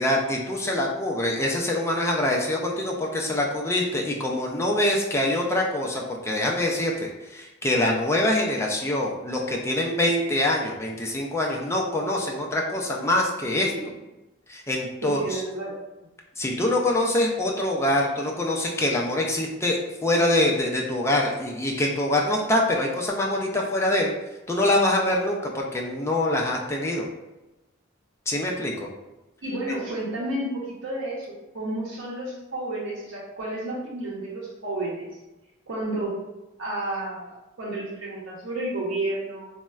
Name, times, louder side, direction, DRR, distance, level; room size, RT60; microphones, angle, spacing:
voice 1, 0.0-13.7 14.5-15.4 16.4-24.1 24.5-27.1 28.3-28.9, left 1 dB, 15° left, -1 dB, 0.3 m, -24 dB
voice 2, 15.0-15.7 29.4-31.3 31.5-35.1 35.7-36.2 36.6-39.5, right 1 dB, 75° right, -6 dB, 0.7 m, -31 dB
4.1 x 2.1 x 2.3 m, 1.0 s
head